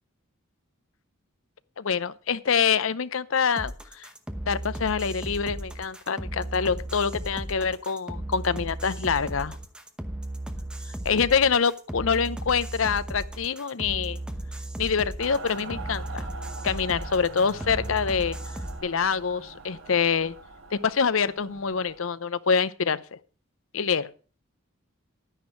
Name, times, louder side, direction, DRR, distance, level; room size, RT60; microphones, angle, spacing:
voice 1, 1.8-4.1 4.5-9.6 11.0-14.2 14.8-16.2 16.6-18.4 18.8-20.3 20.7-23.2 23.7-24.1, left 6 dB, 80° left, 0.7 m, -25 dB
sound 1, 3.6-18.8, right 1 dB, 5° right, 0.9 m, -35 dB
Mechanical fan, 15.2-22.0, right 3 dB, 70° right, 1.7 m, -42 dB
10.5 x 10.0 x 4.5 m
head